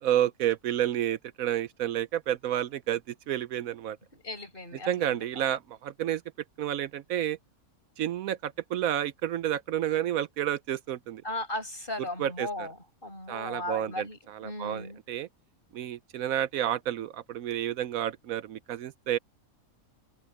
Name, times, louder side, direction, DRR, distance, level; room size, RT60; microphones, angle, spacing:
voice 1, 0.0-3.0 3.3-4.0 4.9-6.2 6.6-7.4 8.0-11.2 12.0-12.7 13.3-15.3 15.7-19.2, right 11 dB, 75° right, 1.0 m, -30 dB
voice 2, 4.1-5.5 11.2-12.8 13.0-15.0, left 1 dB, 35° left, 5.3 m, -37 dB
omnidirectional pair, 1.5 m